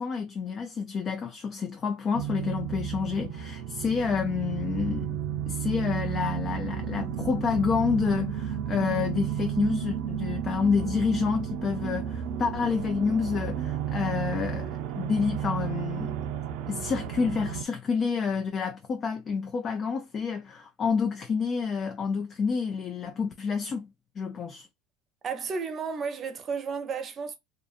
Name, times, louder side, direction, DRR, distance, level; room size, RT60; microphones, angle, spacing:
voice 1, 0.0-5.2 5.5-16.1 16.7-23.9 24.2-24.7, left 5 dB, 35° left, 0.4 m, -29 dB
sound 1, 2.1-17.6, right 9 dB, 70° right, 0.4 m, -32 dB
voice 2, 25.2-27.3, right 5 dB, 35° right, 0.7 m, -32 dB
2.5 x 2.5 x 2.4 m
supercardioid pair, 115°, 0 cm